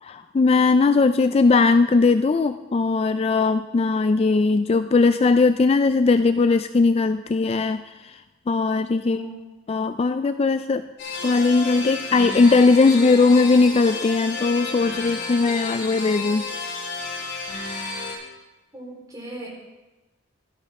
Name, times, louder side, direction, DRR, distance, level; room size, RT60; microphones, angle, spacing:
voice 1, 0.0-8.2 8.5-9.2 9.7-10.9 11.2-16.4, left 3 dB, 30° left, 10 dB, 0.3 m, -19 dB
voice 2, 9.0-9.4 18.7-19.5, equal, 20° right, -3 dB, 4.0 m, -37 dB
sound 1, 11.0-18.1, left 3 dB, 60° left, 5.5 m, -31 dB
17.0 x 12.5 x 3.6 m, 1.1 s
head